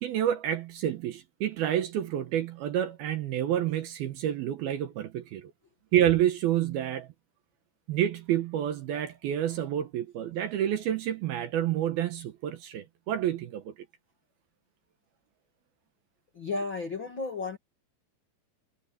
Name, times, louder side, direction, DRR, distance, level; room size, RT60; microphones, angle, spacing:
voice 1, 0.0-5.5 5.9-7.1 7.9-13.7, right 11 dB, 70° right, 2.6 m, -29 dB
voice 2, 16.3-17.6, left 3 dB, 40° left, 1.7 m, -33 dB
omnidirectional pair, 5.2 m